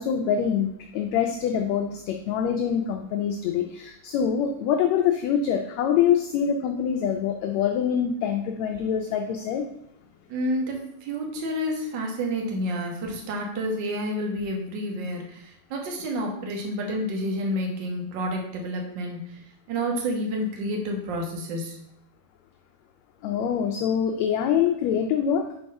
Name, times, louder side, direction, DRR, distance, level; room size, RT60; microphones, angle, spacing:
voice 1, 0.0-9.7 23.2-25.4, left 8 dB, 80° left, 4 dB, 1.6 m, -25 dB
voice 2, 10.3-19.4 19.7-21.8, equal, 55° right, 1 dB, 1.3 m, -29 dB
5.4 x 4.7 x 5.2 m, 0.74 s
omnidirectional pair, 3.5 m